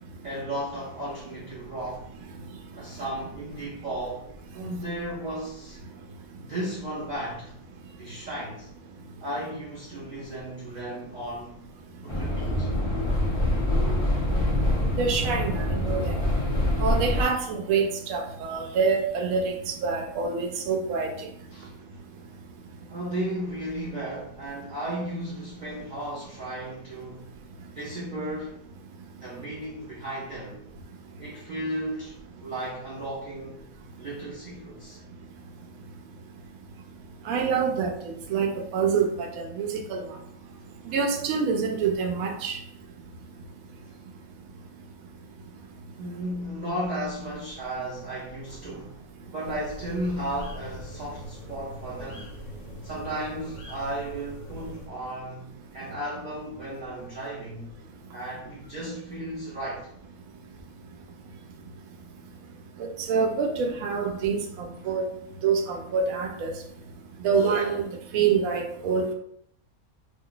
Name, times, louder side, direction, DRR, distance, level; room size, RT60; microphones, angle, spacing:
voice 1, 0.2-2.2 2.7-4.3 4.5-5.8 6.4-7.6 8.0-8.7 9.2-11.6 12.0-12.7 21.5-21.7 22.9-27.4 27.7-28.6 29.2-30.6 31.2-33.6 34.0-35.0 46.0-49.0 49.3-52.3 52.8-57.7 58.1-59.9, right 1 dB, 45° right, -7 dB, 0.6 m, -34 dB
sound 1, 12.1-17.2, left 1 dB, 30° left, 0.6 m, -25 dB
voice 2, 15.0-16.1 16.8-19.5 19.8-21.3 37.3-40.0 40.9-42.6 62.8-64.4 64.9-65.1 65.4-66.5 67.2-67.8 68.1-69.1, right 5 dB, 75° right, 3 dB, 1.0 m, -26 dB
sound 2, 49.4-54.9, left 1 dB, 65° left, 0.8 m, -42 dB
2.5 x 2.3 x 3.8 m, 0.73 s
omnidirectional pair, 1.6 m